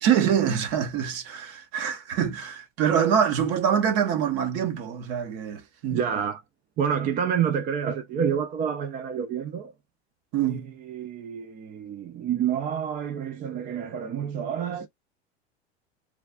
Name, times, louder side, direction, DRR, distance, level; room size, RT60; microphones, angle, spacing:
voice 1, 0.0-6.0 10.3-10.7, right 8 dB, 45° right, 0.8 m, -25 dB
voice 2, 5.9-6.4 6.8-9.7 10.4-14.9, right 8 dB, 25° right, 0.4 m, -28 dB
3.2 x 2.3 x 2.2 m
hypercardioid pair, 90°, 33 cm